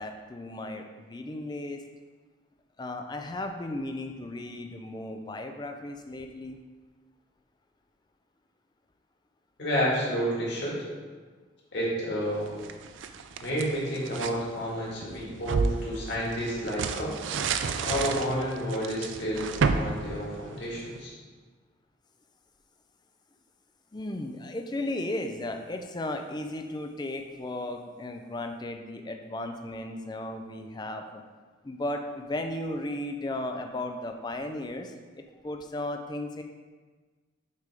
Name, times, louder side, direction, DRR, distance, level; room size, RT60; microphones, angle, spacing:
voice 1, 0.0-1.8 2.8-6.6 23.9-31.2 31.6-36.4, left 1 dB, 20° left, 5 dB, 0.4 m, -35 dB
voice 2, 9.6-10.8 11.7-12.6 13.4-17.1 17.5-21.1, equal, 60° left, -6 dB, 2.0 m, -30 dB
sound 1, 12.4-14.4 14.9-21.0, right 4 dB, 75° right, 0.4 m, -31 dB
6.6 x 3.5 x 4.8 m, 1.4 s
head